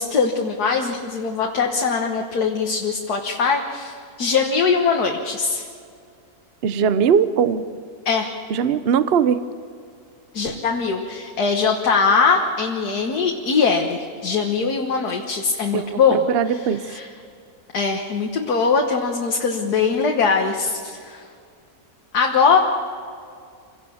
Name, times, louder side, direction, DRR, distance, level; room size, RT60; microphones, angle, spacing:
voice 1, 0.0-5.7 8.1-8.3 10.3-16.3 16.9-17.1 17.7-21.2 22.1-22.6, left 5 dB, 80° left, 2 dB, 1.9 m, -21 dB
voice 2, 6.6-7.6 8.5-9.4 15.7-16.8, right 7 dB, 50° right, 13 dB, 0.8 m, -20 dB
27.0 x 17.5 x 7.1 m, 2.2 s
omnidirectional pair, 1.7 m